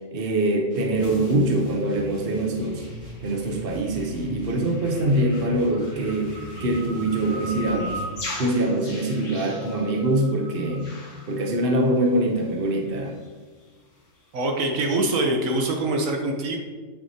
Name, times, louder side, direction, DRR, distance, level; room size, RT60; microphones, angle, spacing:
voice 1, 0.1-2.8 3.2-8.0 8.4-10.9 11.3-13.1, right 1 dB, 50° right, 1 dB, 1.1 m, -24 dB
sound 1, 0.7-8.2, right 2 dB, 65° right, 2.4 m, -39 dB
sound 2, 1.0-12.2 12.5-12.6 12.9-13.0 13.2-13.3 13.6-13.7, left 1 dB, 70° left, 1.9 m, -40 dB
voice 2, 14.3-16.6, right 2 dB, 85° right, 2 dB, 1.4 m, -24 dB
8.9 x 6.5 x 2.8 m, 1.4 s
omnidirectional pair, 1.3 m